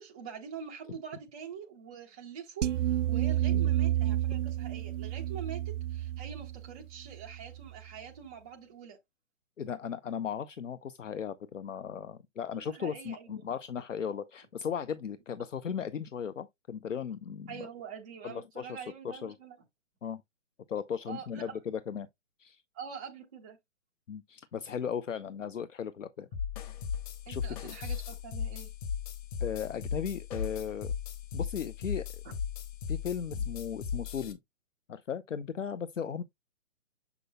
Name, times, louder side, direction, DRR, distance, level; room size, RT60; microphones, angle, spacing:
voice 1, 0.0-5.6 5.9-9.0 12.7-13.4 17.5-19.6 21.1-21.6 22.7-23.6 27.3-28.7, right 7 dB, 5° right, 0.3 m, -45 dB
sound 1, 2.6-7.8, right 13 dB, 75° right, 0.5 m, -30 dB
voice 2, 9.6-17.7 18.2-19.3 20.0-20.2 20.7-22.1 22.4-22.6 24.1-26.3 27.3-27.7 29.4-30.9 31.3-32.0 32.9-34.4 34.9-36.2, left 7 dB, 80° left, 0.8 m, -37 dB
sound 2, 26.3-34.3, left 7 dB, 30° left, 1.1 m, -37 dB
6.9 x 6.0 x 2.2 m
figure-of-eight pair, 140°, 37 cm